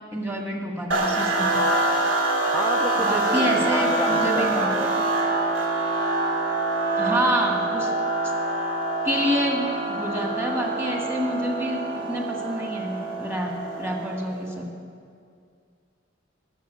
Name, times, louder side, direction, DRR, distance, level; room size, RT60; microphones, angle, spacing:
voice 1, 0.1-1.6 3.0-4.7 7.0-7.9 9.0-14.7, equal, 10° right, 1 dB, 1.7 m, -27 dB
sound 1, 0.9-14.3, right 2 dB, 80° right, 2.0 m, -25 dB
voice 2, 2.5-4.9, left 1 dB, 5° left, 0 dB, 0.6 m, -30 dB
12.5 x 7.2 x 9.2 m, 2.2 s
head